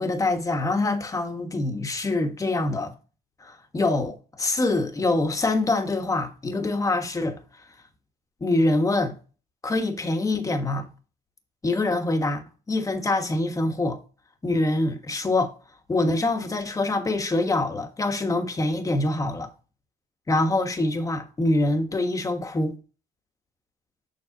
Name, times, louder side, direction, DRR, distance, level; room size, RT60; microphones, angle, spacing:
voice 1, 0.0-2.9 3.4-7.4 8.4-9.2 9.6-10.9 11.6-14.0 14.4-15.5 15.9-19.5 20.3-22.8, left 2 dB, 20° left, 1.3 m, -25 dB
7.2 x 6.4 x 2.9 m
cardioid pair, 110°, 17 cm